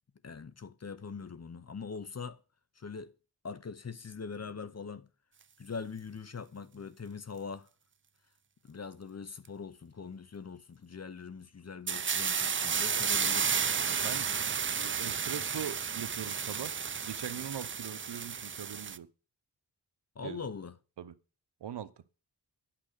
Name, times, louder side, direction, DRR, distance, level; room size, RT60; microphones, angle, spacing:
voice 1, 0.2-2.4 2.8-3.1 3.4-5.1 5.6-7.7 8.6-13.6 20.2-20.7, left 5 dB, 40° left, 0.7 m, -42 dB
steam long, 11.9-19.0, right 6 dB, 30° right, 0.4 m, -32 dB
voice 2, 13.1-13.5 14.0-14.3 14.7-16.7 17.0-19.1 20.2-20.4 21.0-21.1 21.6-21.9, right 9 dB, 85° right, 0.8 m, -41 dB
10.0 x 5.9 x 6.6 m
wide cardioid pair, 65°, 40 cm